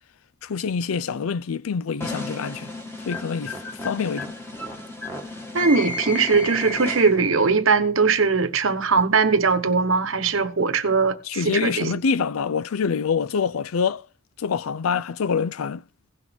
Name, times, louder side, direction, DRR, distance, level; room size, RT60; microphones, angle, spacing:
voice 1, 0.4-2.7 3.1-4.3 11.2-14.0 14.4-15.8, left 6 dB, 90° left, 0.5 m, -26 dB
sound 1, 2.0-7.4, left 1 dB, 10° left, 1.7 m, -32 dB
voice 2, 5.5-11.2 11.4-11.9, right 4 dB, 70° right, 1.1 m, -20 dB
17.0 x 6.1 x 3.6 m
head